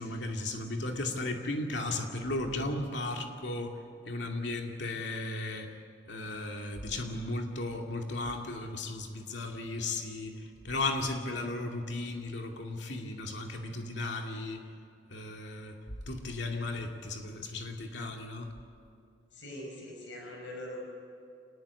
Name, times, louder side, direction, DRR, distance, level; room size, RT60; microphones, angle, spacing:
voice 1, 0.0-3.8 4.0-5.7 6.1-14.6 15.1-15.8 16.1-18.5, left 2 dB, 65° left, 2 dB, 2.5 m, -35 dB
voice 2, 19.3-20.8, left 1 dB, 85° left, 0 dB, 5.7 m, -42 dB
27.5 x 19.5 x 8.4 m, 2.4 s
head